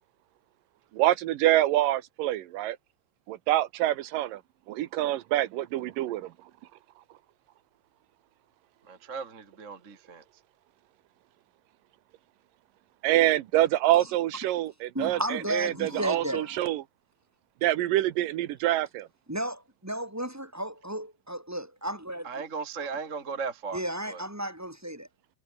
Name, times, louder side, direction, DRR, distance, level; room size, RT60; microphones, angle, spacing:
voice 1, 0.9-2.8 3.3-4.4 4.7-6.3 13.0-16.8 17.6-19.1, right 14 dB, 80° right, 2.7 m, -26 dB
voice 2, 8.9-10.2 22.2-23.8 24.1-24.2, right 5 dB, 25° right, 2.2 m, -36 dB
voice 3, 14.9-16.6 19.3-22.3 23.7-25.1, right 1 dB, 5° right, 2.7 m, -33 dB
omnidirectional pair, 3.9 m